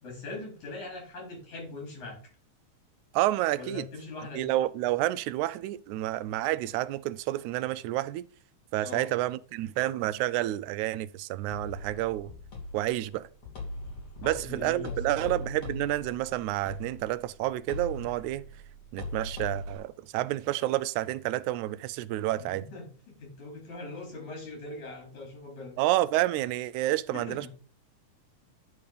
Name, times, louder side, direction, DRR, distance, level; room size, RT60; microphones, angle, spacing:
voice 1, 0.0-2.2 3.6-4.5 8.8-9.1 14.2-15.2 22.4-25.8 27.1-27.5, left 2 dB, 80° left, 5.6 m, -41 dB
voice 2, 3.1-3.9 4.3-8.3 8.7-12.3 12.7-13.3 14.2-18.4 18.9-22.6 25.8-27.5, right 15 dB, 90° right, 2.0 m, -29 dB
sound 1, 11.5-19.8, left 1 dB, 55° left, 3.7 m, -40 dB
10.0 x 3.6 x 6.7 m
omnidirectional pair, 3.3 m